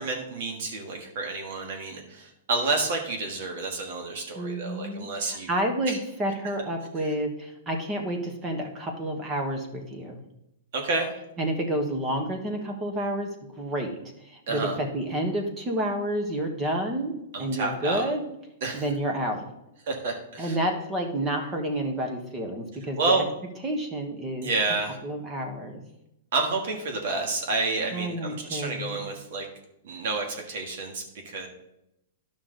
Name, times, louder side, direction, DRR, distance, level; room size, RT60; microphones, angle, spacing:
voice 1, 0.0-5.5 5.9-6.0 10.7-11.1 14.5-14.8 17.3-18.0 18.6-18.8 19.9-20.6 23.0-23.2 24.4-25.0 26.3-29.5 29.8-31.5, right 3 dB, 60° right, 3 dB, 1.7 m, -29 dB
voice 2, 4.3-10.2 11.4-14.0 14.2-18.2 18.7-19.4 20.4-23.2 23.6-24.5 25.0-25.8 27.9-29.1, right 1 dB, 20° right, 3 dB, 1.3 m, -30 dB
11.0 x 5.8 x 3.9 m, 0.83 s
hypercardioid pair, 150°, 0 cm